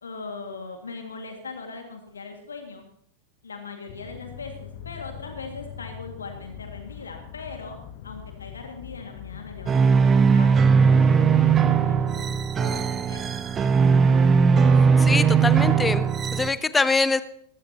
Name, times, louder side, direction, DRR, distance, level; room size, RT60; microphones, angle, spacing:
voice 1, 0.0-2.8 3.4-9.8 10.1-12.3 12.6-13.2, left 4 dB, 70° left, 4 dB, 2.0 m, -40 dB
sound 1, 3.9-12.5, left 9 dB, 50° left, 1.2 m, -42 dB
sound 2, 9.7-16.5, right 6 dB, 25° right, 1.0 m, -19 dB
voice 2, 15.0-17.2, left 4 dB, 10° left, 15 dB, 0.7 m, -24 dB
20.0 x 14.5 x 2.9 m, 0.66 s
figure-of-eight pair, 90°, 0 cm